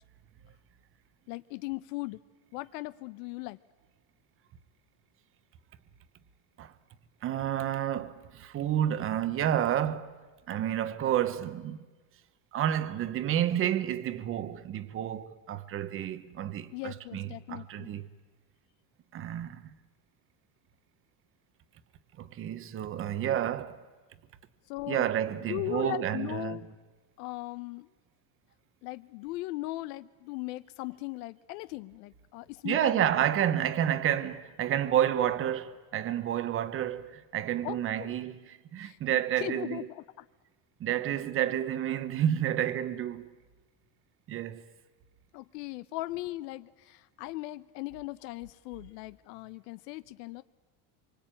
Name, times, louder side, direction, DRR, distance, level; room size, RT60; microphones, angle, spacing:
voice 1, 1.3-2.2 2.5-3.6 16.7-17.9 24.7-25.1 25.5-26.6 27.2-27.9 28.8-33.1 37.6-38.1 38.8-40.3 45.3-50.4, left 19 dB, 85° left, 0.9 m, -38 dB
voice 2, 7.2-10.1 10.5-11.8 12.5-18.1 19.1-19.7 22.2-23.8 24.9-26.6 32.6-38.4 38.7-39.9 40.8-43.3 44.3-44.6, right 10 dB, 25° right, 1.0 m, -30 dB
26.5 x 24.0 x 9.0 m
cardioid pair, 175°, 48 cm